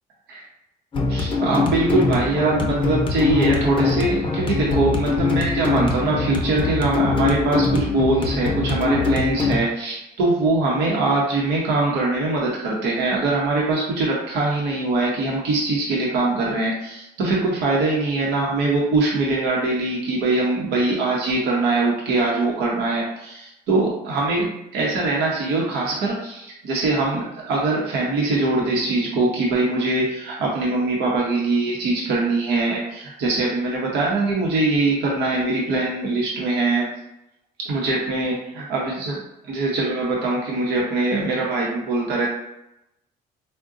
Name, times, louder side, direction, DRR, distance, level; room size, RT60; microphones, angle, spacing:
sound 1, 0.9-9.6, left 4 dB, 30° left, 0.6 m, -23 dB
voice 1, 1.1-36.9 37.6-39.2 39.5-42.3, right 2 dB, 80° right, -3 dB, 0.8 m, -22 dB
3.7 x 2.2 x 2.5 m, 0.86 s
cardioid pair, 110°, 17 cm